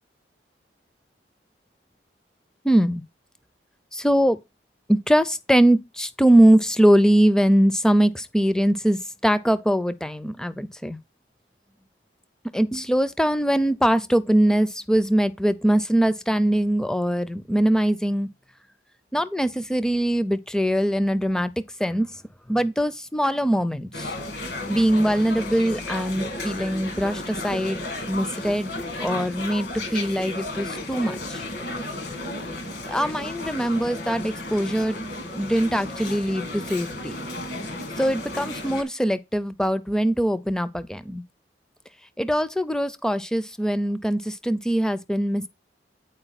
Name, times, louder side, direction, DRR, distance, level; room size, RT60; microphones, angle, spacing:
voice 1, 2.6-3.0 3.9-4.4 4.9-11.0 12.5-18.3 19.1-21.5 21.8-22.1 22.5-24.1 24.7-28.7 29.0-31.4 32.5-32.6 32.9-35.0 35.3-37.2 38.0-41.2 42.2-45.5, right 1 dB, 5° left, 0.5 m, -22 dB
sound 1, 23.9-38.8, left 2 dB, 65° left, 2.2 m, -33 dB
9.0 x 4.6 x 4.1 m
head